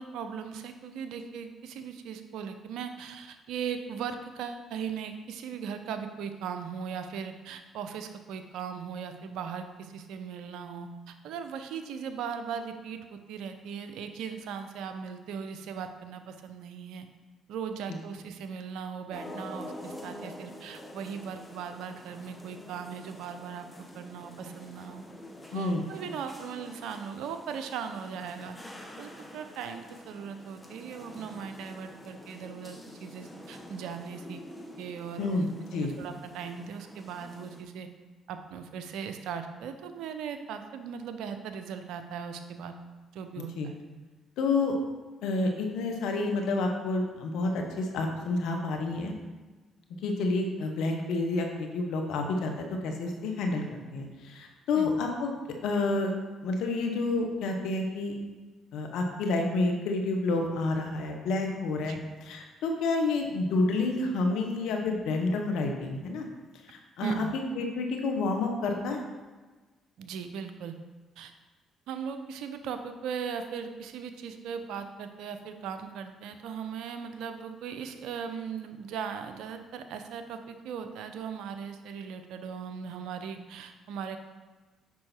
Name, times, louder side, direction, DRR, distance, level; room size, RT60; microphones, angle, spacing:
voice 1, 0.0-17.1 17.5-23.7 23.9-25.0 25.5-28.6 29.0-34.4 34.8-37.9 38.3-42.8 43.1-43.7 54.7-54.9 61.9-62.0 67.0-67.3 70.0-70.7 71.2-71.3 71.9-84.2, right 7 dB, 75° right, 8 dB, 0.7 m, -38 dB
sound 1, 19.1-37.6, left 1 dB, 15° left, 1.6 m, -47 dB
voice 2, 25.5-25.8 35.2-35.9 43.6-43.7 44.4-44.7 45.2-49.1 50.0-53.6 53.9-55.3 55.6-56.1 56.4-58.1 58.7-66.3 66.7-69.0, left 3 dB, 75° left, 3 dB, 1.2 m, -29 dB
8.5 x 5.6 x 4.4 m, 1.3 s
hypercardioid pair, 55°, 0 cm